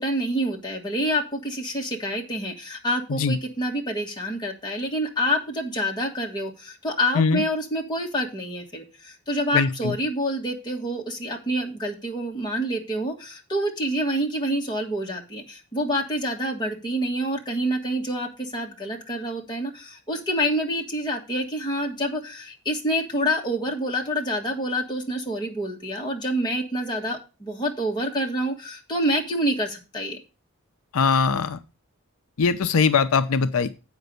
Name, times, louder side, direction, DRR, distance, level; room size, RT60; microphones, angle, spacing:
voice 1, 0.0-30.2, equal, 20° left, 0 dB, 1.6 m, -27 dB
voice 2, 9.5-9.9 30.9-31.6 32.4-33.7, left 5 dB, 75° left, 11 dB, 0.5 m, -21 dB
7.9 x 5.2 x 6.7 m, 0.31 s
head